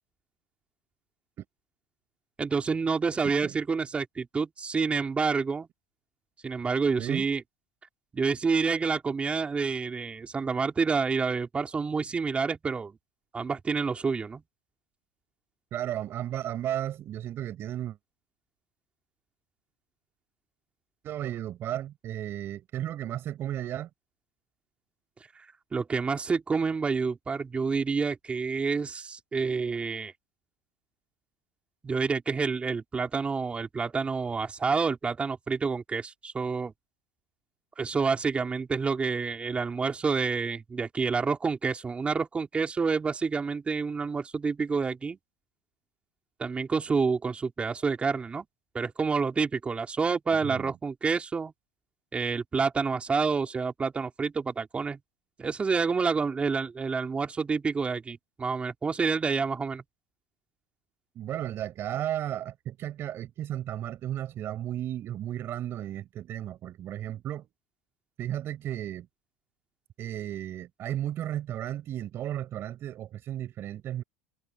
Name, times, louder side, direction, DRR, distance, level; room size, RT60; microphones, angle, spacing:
voice 1, 2.4-5.7 6.4-7.4 8.1-13.0 13.3-14.4 25.7-30.1 31.8-36.7 37.8-45.2 46.4-48.5 48.7-51.5 52.1-55.0 55.4-59.8, right 5 dB, 20° right, 3.5 m, -28 dB
voice 2, 3.2-3.6 7.0-7.3 15.7-18.0 21.0-23.9 50.3-50.7 61.1-67.5 68.2-69.1 70.0-74.0, right 11 dB, 40° right, 6.3 m, -34 dB
supercardioid pair, 115°, 6 cm